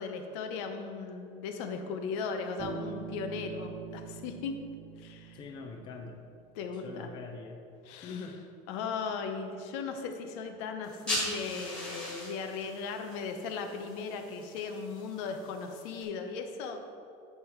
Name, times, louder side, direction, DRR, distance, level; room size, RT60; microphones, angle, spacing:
voice 1, 0.0-4.6 5.0-5.4 6.5-7.1 7.9-8.2 8.7-16.8, left 5 dB, 80° left, 5 dB, 0.8 m, -37 dB
Bass guitar, 2.6-6.4, right 7 dB, 20° right, 0.7 m, -44 dB
voice 2, 5.3-6.2 6.7-7.7 8.0-8.4, left 5 dB, 30° left, 3 dB, 0.7 m, -43 dB
sound 1, 10.8-16.0, left 1 dB, 5° left, 1.8 m, -40 dB
8.3 x 5.6 x 4.5 m, 2.5 s
cardioid pair, 175°, 15 cm